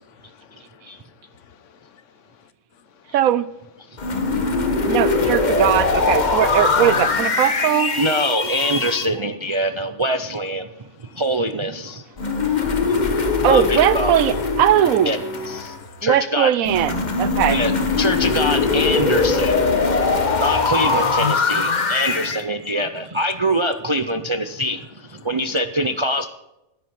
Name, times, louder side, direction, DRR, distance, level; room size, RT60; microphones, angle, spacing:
voice 1, 0.1-1.1 1.3-2.0 3.0-3.1 11.1-11.2 12.2-12.6 15.7-15.8 20.0-20.3 21.2-21.3 25.2-25.3, left 9 dB, 65° left, 1.1 m, -36 dB
voice 2, 3.1-3.5 4.9-7.9 13.4-15.1 16.0-17.6, right 11 dB, 90° right, 1.1 m, -19 dB
sound 1, 4.0-9.1 12.2-15.9 16.6-22.4, left 4 dB, 35° left, 1.2 m, -21 dB
voice 3, 8.0-10.7 11.1-12.0 13.5-14.1 15.1-15.2 15.5-15.7 16.0-16.5 17.5-17.7 18.0-19.7 20.4-26.3, equal, 45° right, 0.4 m, -23 dB
10.5 x 10.5 x 5.5 m
omnidirectional pair, 1.4 m